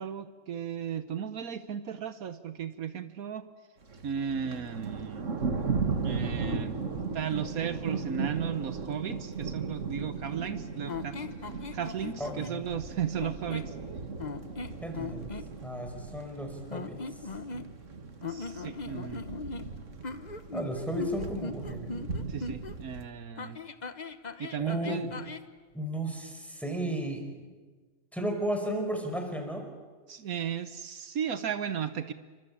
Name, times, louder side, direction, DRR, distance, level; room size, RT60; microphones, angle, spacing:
voice 1, 0.0-3.5 4.0-5.3 6.0-6.8 7.1-11.2 11.7-13.7 18.3-19.3 22.3-23.6 24.4-25.1 30.1-32.1, right 8 dB, 75° right, 11 dB, 1.5 m, -35 dB
Thunder, 3.8-23.0, right 4 dB, 55° right, 2.2 m, -37 dB
sound 1, 10.9-12.6 13.2-13.8 14.2-15.5 16.7-17.9 18.2-22.8 23.4-25.5, left 4 dB, 35° left, 1.1 m, -39 dB
voice 2, 12.2-12.7 14.8-15.3 15.6-17.0 20.5-22.0 24.6-25.2 25.7-27.5 28.1-29.7, right 1 dB, ahead, 3 dB, 5.2 m, -34 dB
28.5 x 24.5 x 8.6 m, 1.4 s
omnidirectional pair, 1.5 m